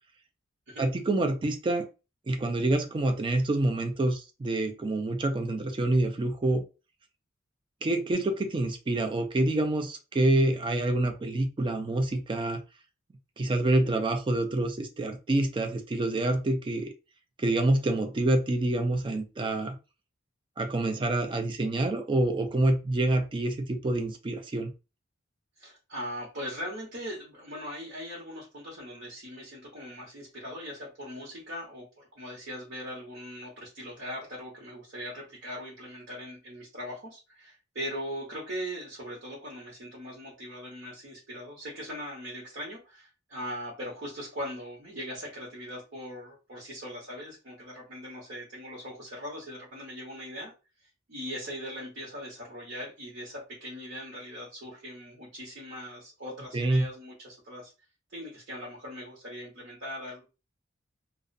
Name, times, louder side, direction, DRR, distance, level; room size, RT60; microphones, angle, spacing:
voice 1, 0.8-1.8 2.3-6.6 7.8-12.6 13.4-16.9 17.4-19.8 20.6-24.7 56.5-56.8, right 2 dB, 25° right, 5 dB, 0.3 m, -27 dB
voice 2, 25.6-50.5 51.1-57.7 58.1-60.3, equal, 60° right, -4 dB, 0.8 m, -40 dB
2.4 x 2.0 x 2.5 m, 0.30 s
head